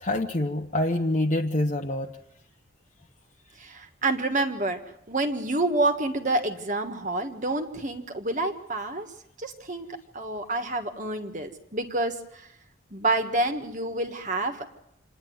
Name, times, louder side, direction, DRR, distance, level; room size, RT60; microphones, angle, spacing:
voice 1, 0.0-2.1, left 1 dB, 35° left, 1 dB, 1.0 m, -26 dB
voice 2, 3.6-4.8 5.1-9.1 9.4-9.9 10.1-12.5 12.9-14.6, right 2 dB, 40° right, 6 dB, 1.5 m, -28 dB
27.0 x 10.5 x 9.5 m, 0.82 s
head